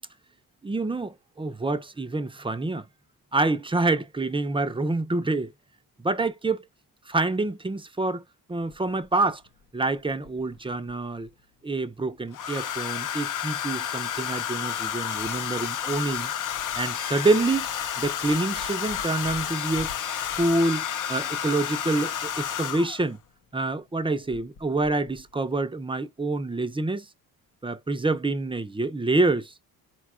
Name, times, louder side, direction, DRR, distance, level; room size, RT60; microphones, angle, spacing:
voice 1, 0.6-2.9 3.3-5.5 6.0-6.6 7.1-8.2 8.5-9.4 9.7-11.3 11.6-16.3 16.8-17.7 18.0-19.9 20.3-23.2 23.5-27.1 27.6-29.5, right 2 dB, 15° right, 0.5 m, -27 dB
Domestic sounds home sounds, 8.7-8.8 10.2-10.9 12.3-23.1 24.3-24.6 24.8-25.2, left 9 dB, 55° left, 0.7 m, -31 dB
4.4 x 2.3 x 4.2 m
cardioid pair, 105°, 38 cm